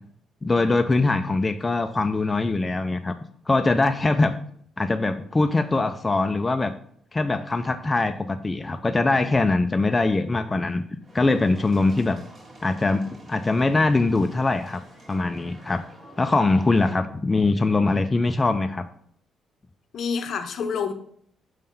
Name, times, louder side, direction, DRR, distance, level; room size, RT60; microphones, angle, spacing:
voice 1, 0.4-3.1 3.5-4.3 4.8-6.7 7.1-10.8 11.1-12.2 12.6-14.8 15.1-15.8 16.2-18.8, left 3 dB, 20° left, 7 dB, 0.4 m, -22 dB
sound 1, 11.0-16.9, right 1 dB, 35° right, 1.8 m, -48 dB
voice 2, 19.9-20.9, left 6 dB, 65° left, 8 dB, 0.7 m, -28 dB
5.4 x 3.7 x 5.4 m, 0.64 s
cardioid pair, 90°, 0 cm